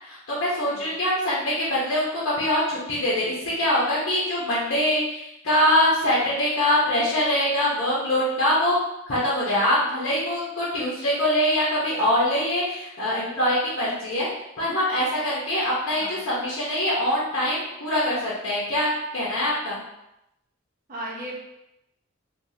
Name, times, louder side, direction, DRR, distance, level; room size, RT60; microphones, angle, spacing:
voice 1, 0.0-8.8 9.1-14.3 14.6-19.8, left 1 dB, 65° left, -7 dB, 0.9 m, -23 dB
voice 2, 0.6-0.9 16.0-16.3 20.9-21.4, right 1 dB, 40° right, -4 dB, 0.8 m, -36 dB
3.5 x 2.3 x 2.7 m, 0.86 s
head